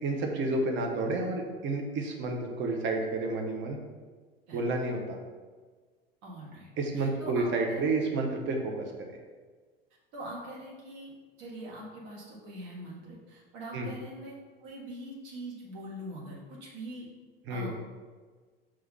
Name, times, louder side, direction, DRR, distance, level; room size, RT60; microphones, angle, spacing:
voice 1, 0.0-3.8 4.5-5.2 6.8-9.2 13.7-13.9 17.5-17.7, right 2 dB, 40° right, 2 dB, 1.0 m, -30 dB
voice 2, 6.2-7.8 10.1-11.1 11.4-14.3 14.6-17.1 17.5-17.8, right 1 dB, 55° right, -3 dB, 1.6 m, -43 dB
5.8 x 3.2 x 5.4 m, 1.4 s
figure-of-eight pair, 70°, 30 cm